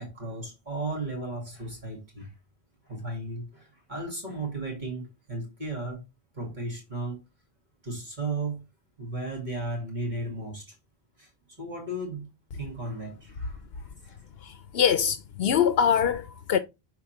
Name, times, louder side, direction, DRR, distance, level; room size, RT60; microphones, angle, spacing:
voice 1, 0.0-2.3 2.8-6.0 6.3-7.2 7.8-8.6 9.0-10.7 11.2-11.3 11.6-12.3 12.5-14.2, right 2 dB, 50° right, 2.6 m, -35 dB
voice 2, 14.7-16.6, left 8 dB, 75° left, 0.8 m, -23 dB
5.8 x 4.6 x 4.6 m
omnidirectional pair, 1.0 m